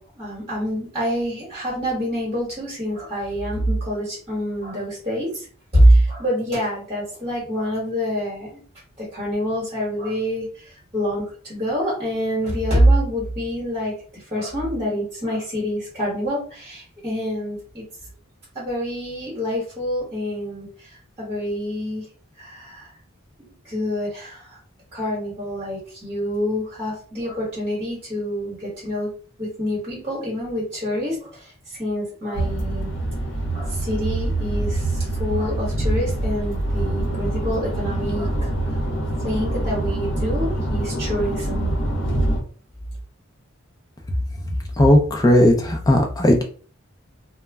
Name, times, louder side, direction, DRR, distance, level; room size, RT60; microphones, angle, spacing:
voice 1, 0.0-5.5 5.7-8.6 9.0-17.8 18.5-22.0 22.4-22.9 23.6-24.6 24.9-29.1 29.4-32.9 33.5-38.4 39.2-41.7, equal, 25° right, -5 dB, 1.1 m, -25 dB
sound 1, 32.3-42.4, right 1 dB, 60° left, 0.8 m, -25 dB
voice 2, 44.8-46.4, left 1 dB, 20° left, 2 dB, 0.5 m, -16 dB
2.2 x 2.1 x 3.3 m, 0.41 s
head